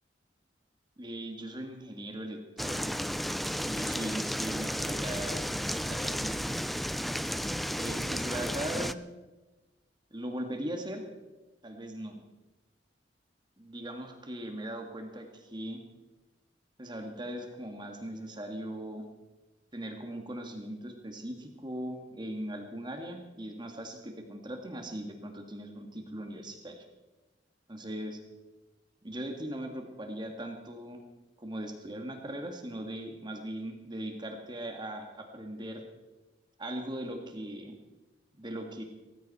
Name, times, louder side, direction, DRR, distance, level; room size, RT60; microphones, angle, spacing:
voice 1, 1.0-2.9 3.7-6.6 7.7-9.0 10.1-11.0 11.6-12.2 13.6-15.8 16.8-19.1 19.7-26.9 27.7-28.2 29.0-31.0 31.4-35.8 36.6-37.8 38.4-38.8, right 1 dB, 25° right, 4 dB, 1.9 m, -39 dB
sound 1, 2.6-8.9, equal, ahead, 0.4 m, -33 dB
18.0 x 15.0 x 4.3 m, 1.1 s
head